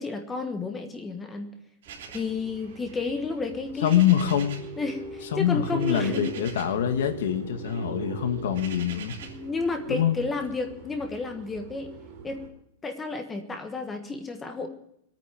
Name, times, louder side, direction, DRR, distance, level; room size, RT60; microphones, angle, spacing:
voice 1, 0.0-1.6 2.1-4.2 4.8-6.3 9.2-11.9 12.2-12.4 12.8-14.7, left 3 dB, 10° left, 6 dB, 1.3 m, -32 dB
sound 1, 1.8-4.8 5.0-6.9 7.2-9.5, right 7 dB, 70° right, 3.3 m, -45 dB
sound 2, 1.9-12.5, right 5 dB, 30° right, 2.8 m, -41 dB
voice 2, 3.8-4.6 5.3-9.2 9.9-10.2, left 10 dB, 75° left, 7 dB, 1.9 m, -24 dB
22.5 x 9.3 x 5.1 m, 0.72 s
supercardioid pair, 175°, 0 cm